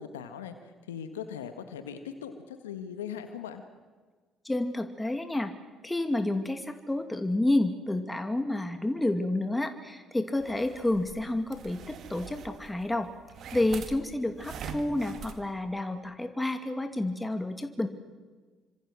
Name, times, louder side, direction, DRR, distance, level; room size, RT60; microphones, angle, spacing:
voice 1, 0.0-3.6, left 8 dB, 85° left, 8 dB, 1.6 m, -40 dB
voice 2, 4.4-5.5 5.8-13.1 13.5-17.9, left 1 dB, 10° left, 7 dB, 2.5 m, -29 dB
sound 1, 10.4-15.4, right 7 dB, 60° right, 2.3 m, -44 dB
27.5 x 25.5 x 6.3 m, 1.4 s
hypercardioid pair, 50°, 0 cm